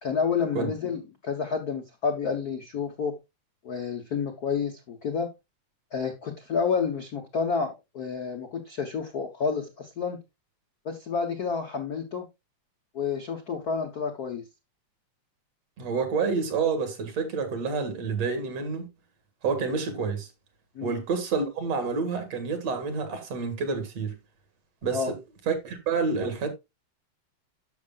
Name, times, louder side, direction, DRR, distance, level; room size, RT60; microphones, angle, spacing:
voice 1, 0.0-3.2 3.6-5.3 5.9-10.2 10.8-12.3 12.9-14.4 20.7-21.0 24.9-25.1, left 5 dB, 75° left, 0.8 m, -29 dB
voice 2, 15.8-18.9 19.4-20.3 20.8-24.2 24.8-25.2 25.5-26.5, right 5 dB, 60° right, 2.7 m, -28 dB
11.5 x 6.6 x 2.4 m
omnidirectional pair, 3.4 m